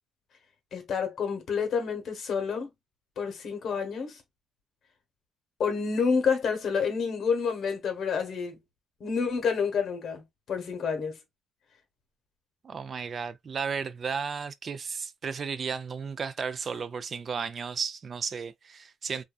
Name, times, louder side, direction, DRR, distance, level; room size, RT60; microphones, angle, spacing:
voice 1, 0.7-2.7 3.2-4.2 5.6-8.6 9.0-11.2, left 5 dB, 60° left, 0.9 m, -29 dB
voice 2, 12.6-19.2, right 6 dB, 45° right, 0.3 m, -34 dB
2.6 x 2.2 x 2.3 m
cardioid pair, 90°, 0 cm